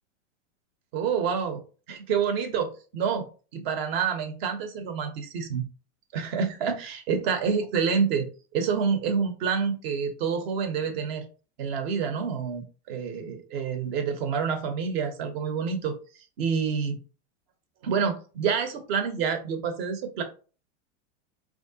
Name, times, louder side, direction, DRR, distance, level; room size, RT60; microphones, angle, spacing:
voice 1, 0.9-1.6 1.9-3.3 3.5-5.6 6.1-8.3 8.5-11.2 11.6-15.9 16.4-17.0 17.8-20.2, right 6 dB, 55° right, 6 dB, 1.1 m, -28 dB
4.7 x 3.0 x 2.8 m, 0.37 s
supercardioid pair, 160°, 36 cm